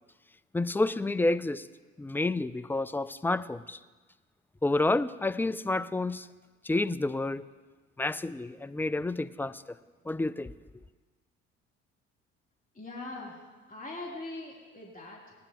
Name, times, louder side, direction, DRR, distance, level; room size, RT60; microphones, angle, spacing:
voice 1, 0.5-1.7 2.0-3.8 4.6-6.3 6.6-7.5 8.0-9.6 10.1-10.5, left 2 dB, 5° left, 0.4 m, -29 dB
voice 2, 12.7-13.4 13.7-15.3, left 2 dB, 20° left, 3.4 m, -41 dB
19.0 x 11.0 x 3.0 m
hypercardioid pair, 50°, 36 cm